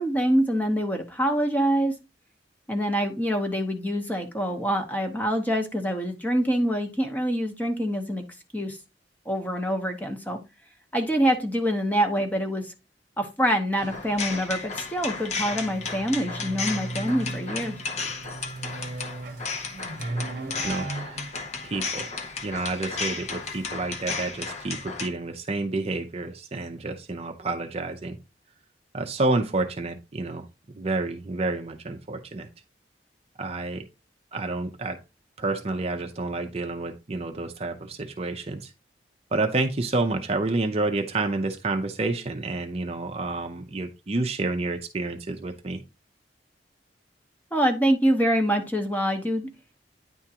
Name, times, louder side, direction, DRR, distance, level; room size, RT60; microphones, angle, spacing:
voice 1, 0.0-1.9 2.7-8.2 8.5-8.8 9.3-10.4 10.9-12.7 13.2-17.7 47.5-49.5, equal, 10° left, 4 dB, 0.9 m, -25 dB
sound 1, 13.7-25.1, left 4 dB, 40° left, 0.7 m, -34 dB
sound 2, 13.8-14.8 15.2-24.1, right 2 dB, 50° right, 0.9 m, -38 dB
voice 2, 20.6-21.4 21.7-28.2 28.9-30.5 30.7-32.5 33.4-33.8 34.3-35.0 35.4-38.7 39.3-45.8, right 2 dB, 35° right, 4 dB, 0.5 m, -29 dB
9.7 x 3.6 x 2.8 m, 0.27 s
head